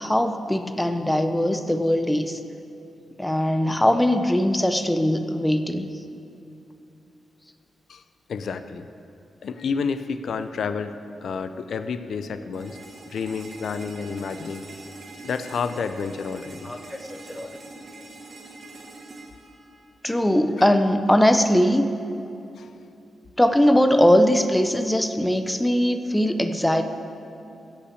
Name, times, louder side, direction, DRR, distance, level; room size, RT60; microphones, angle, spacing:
voice 1, 0.0-2.4 3.2-5.9 16.6-17.6 20.0-21.9 23.4-26.8, equal, 5° left, 7 dB, 0.5 m, -21 dB
voice 2, 8.3-8.9 9.4-12.8 13.1-14.6 15.2-16.9 22.6-22.7, left 5 dB, 60° left, 10 dB, 0.5 m, -30 dB
sound 1, 12.5-20.5, right 2 dB, 40° right, 1.5 m, -44 dB
14.5 x 5.7 x 8.4 m, 2.7 s
wide cardioid pair, 165°, 0 cm